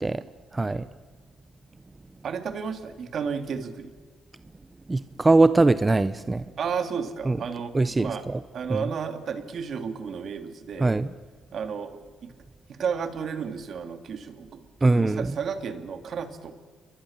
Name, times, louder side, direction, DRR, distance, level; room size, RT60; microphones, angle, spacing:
voice 1, 0.5-0.9 4.9-6.4 7.2-7.4 7.7-8.4 8.7-8.9 10.8-11.1 14.8-15.4, right 2 dB, 20° right, 14 dB, 0.8 m, -22 dB
voice 2, 2.2-3.9 6.6-8.2 8.5-10.9 11.5-12.3 12.7-16.5, right 6 dB, 60° right, 8 dB, 2.6 m, -32 dB
29.0 x 23.0 x 7.3 m, 1.5 s
cardioid pair, 90°, 0 cm